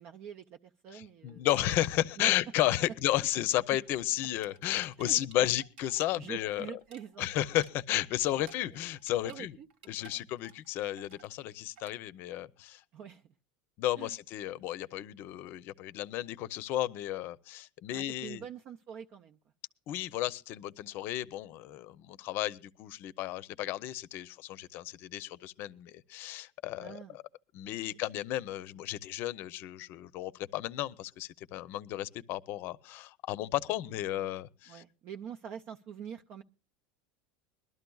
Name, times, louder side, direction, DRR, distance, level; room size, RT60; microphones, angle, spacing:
voice 1, 0.0-1.5 2.2-2.3 5.0-5.2 6.2-7.3 8.3-8.4 9.2-9.7 12.9-13.2 14.0-14.1 17.9-19.4 26.8-27.2 27.7-28.0 34.2-34.3 34.7-36.4, right 8 dB, 40° right, 0.6 m, -45 dB
voice 2, 0.9-6.7 7.2-9.6 9.9-12.8 13.8-18.4 19.9-27.2 27.5-34.8, left 14 dB, 45° left, 0.7 m, -33 dB
sound 1, 1.3-2.8 3.1-3.3 3.6-6.1 6.4-9.4 9.7-10.7 11.0-11.3 11.8-12.0, right 7 dB, 85° right, 1.9 m, -56 dB
22.5 x 12.5 x 2.3 m
supercardioid pair, 150°, 5 cm